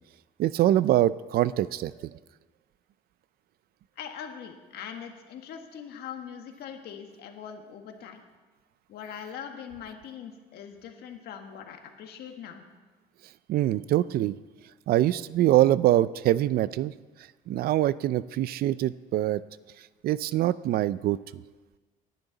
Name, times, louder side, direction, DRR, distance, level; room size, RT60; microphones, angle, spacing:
voice 1, 0.4-2.1 13.5-14.4 14.9-16.9 17.5-19.4 20.0-21.4, right 13 dB, 65° right, 18 dB, 0.5 m, -24 dB
voice 2, 4.0-8.2 8.9-12.6, left 8 dB, 75° left, 4 dB, 1.7 m, -42 dB
19.0 x 10.5 x 4.1 m, 1.3 s
cardioid pair, 110°, 17 cm